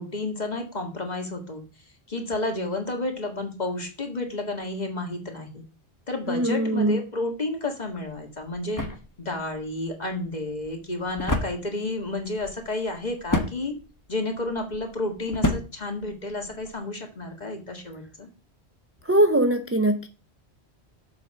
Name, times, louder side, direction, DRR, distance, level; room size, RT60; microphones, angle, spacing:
voice 1, 0.0-1.6 2.1-5.6 6.1-8.8 9.2-13.7 14.1-18.3, left 2 dB, 40° left, 1.9 m, -31 dB
voice 2, 6.3-7.0 19.0-20.1, right 1 dB, 15° right, 0.5 m, -21 dB
sound 1, 7.9-16.7, left 1 dB, 15° left, 1.3 m, -33 dB
7.2 x 5.3 x 6.4 m
omnidirectional pair, 1.1 m